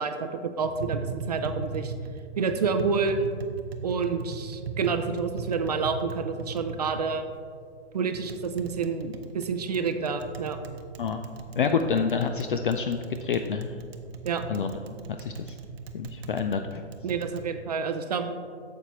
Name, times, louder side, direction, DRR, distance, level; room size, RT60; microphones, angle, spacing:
voice 1, 0.0-1.9 2.4-3.3 3.8-7.3 7.9-10.6 11.6-11.8 14.2-14.4 17.0-18.4, right 5 dB, 40° right, 8 dB, 0.4 m, -29 dB
Tap, 0.6-17.5, right 5 dB, 65° right, 0.9 m, -39 dB
voice 2, 11.6-13.7 14.5-15.6 15.9-16.8, left 6 dB, 50° left, 7 dB, 0.4 m, -28 dB
9.2 x 6.9 x 3.0 m, 2.1 s
hypercardioid pair, 160°, 34 cm